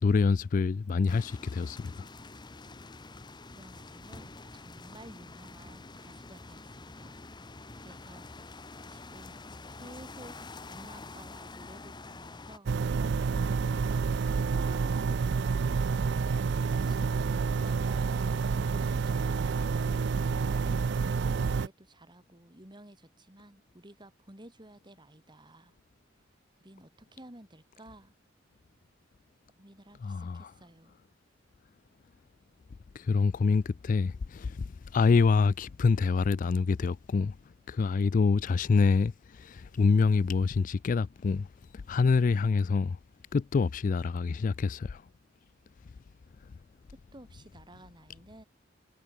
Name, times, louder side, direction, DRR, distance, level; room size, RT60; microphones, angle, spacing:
voice 1, 0.0-2.1 30.0-30.5 32.9-37.4 37.7-43.0 43.3-45.1 46.5-46.6, left 4 dB, 45° left, 0.3 m, -26 dB
sound 1, 1.1-12.6, left 3 dB, 25° left, 0.9 m, -47 dB
voice 2, 3.5-7.1 7.8-8.3 8.9-9.4 9.7-10.4 10.7-15.8 16.6-18.3 20.4-25.8 26.6-28.1 29.6-31.0 46.9-48.5, right 1 dB, 25° right, 3.3 m, -53 dB
sound 2, 12.7-21.7, right 5 dB, 60° right, 0.4 m, -28 dB
head